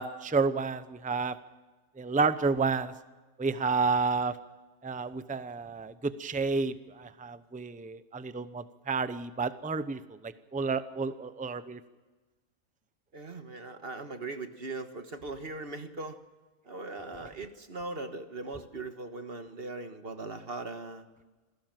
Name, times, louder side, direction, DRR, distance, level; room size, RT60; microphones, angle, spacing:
voice 1, 0.0-1.4 2.0-2.9 3.4-4.4 4.8-11.8, right 4 dB, 10° right, 12 dB, 0.6 m, -30 dB
voice 2, 13.1-16.2 16.7-21.0, right 3 dB, 45° right, 8 dB, 1.6 m, -39 dB
27.0 x 17.5 x 7.7 m, 1.2 s
omnidirectional pair, 1.5 m